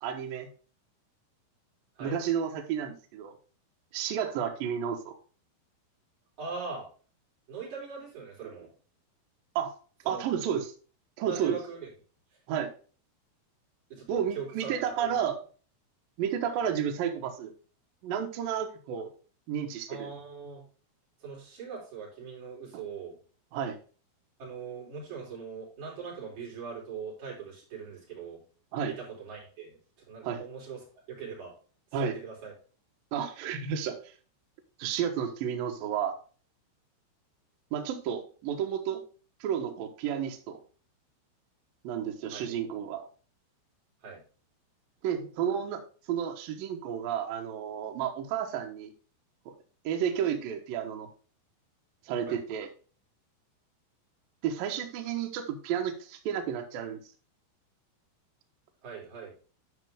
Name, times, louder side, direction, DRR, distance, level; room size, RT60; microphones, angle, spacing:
voice 1, 0.0-0.5 2.0-3.3 3.9-5.2 9.6-9.7 10.1-10.7 11.2-11.6 12.5-12.7 14.1-15.4 16.2-17.5 18.0-19.1 19.5-20.1 22.7-22.8 23.5-23.8 28.7-29.0 30.2-30.4 31.9-32.2 33.1-34.1 34.8-36.2 37.7-39.0 39.4-40.6 41.8-43.1 45.0-45.8 46.1-48.9 49.5-49.6 49.8-51.1 52.1-52.7 54.4-57.0, right 8 dB, 70° right, 4 dB, 2.2 m, -31 dB
voice 2, 6.4-6.9 7.5-8.7 10.0-10.4 11.2-11.9 13.9-15.2 19.9-20.6 21.2-23.2 24.4-28.4 28.9-30.8 31.1-31.5 32.0-32.5 42.3-42.6 44.0-44.2 52.3-52.4 58.8-59.3, right 5 dB, 40° right, -5 dB, 5.5 m, -41 dB
12.0 x 5.2 x 3.6 m, 0.38 s
omnidirectional pair, 5.8 m